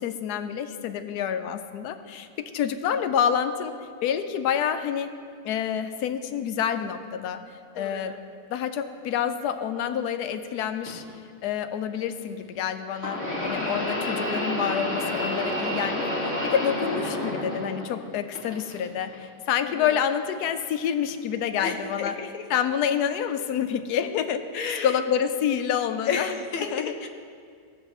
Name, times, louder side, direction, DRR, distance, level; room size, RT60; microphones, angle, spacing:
voice 1, 0.0-2.3 2.5-3.7 4.0-5.1 5.4-8.2 8.5-11.0 11.4-22.1 22.5-24.5 24.8-26.3 26.7-26.9, left 8 dB, 90° left, 9 dB, 1.1 m, -28 dB
voice 2, 7.8-8.2 19.6-20.0 21.6-22.5 24.5-25.0 26.1-27.1, left 5 dB, 70° left, 5 dB, 1.1 m, -32 dB
sound 1, 10.9-11.0 13.0-18.0 18.3-19.1 19.9-20.0 21.0-21.1, left 1 dB, 10° left, 2.1 m, -29 dB
15.5 x 7.2 x 3.0 m, 2.2 s
omnidirectional pair, 1.6 m